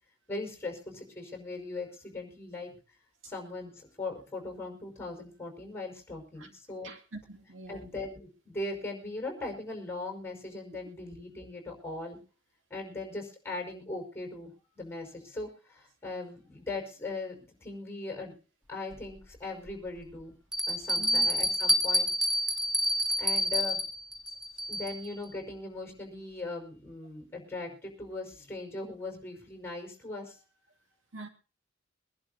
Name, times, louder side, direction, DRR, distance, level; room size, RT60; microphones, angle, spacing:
voice 1, 0.3-2.7 3.2-6.9 7.7-12.2 12.7-18.4 18.7-20.3 20.7-22.1 23.2-23.8 24.7-30.4, left 2 dB, 15° left, 5.3 m, -39 dB
voice 2, 6.8-7.8 21.0-21.3 31.1-31.3, right 2 dB, 75° right, 2.3 m, -44 dB
Bell, 18.9-19.0 19.7-19.8 20.5-25.1, equal, 5° right, 1.9 m, -28 dB
24.5 x 11.5 x 2.7 m
head